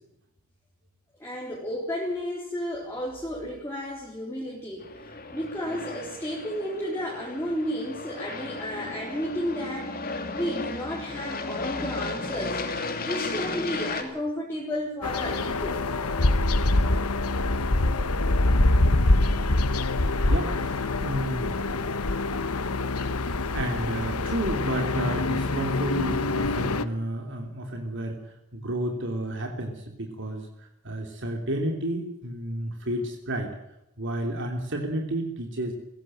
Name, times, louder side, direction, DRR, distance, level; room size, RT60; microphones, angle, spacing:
voice 1, 1.2-12.6 13.0-15.8, equal, 10° left, -4 dB, 4.0 m, -32 dB
Aircraft, 4.8-14.0, left 3 dB, 40° left, 3.0 m, -34 dB
sound 1, 15.0-26.8, left 2 dB, 85° left, 1.3 m, -25 dB
voice 2, 20.2-21.7 23.5-33.5 34.0-35.7, right 1 dB, 55° right, 2 dB, 3.2 m, -31 dB
21.5 x 17.0 x 7.7 m, 0.85 s
head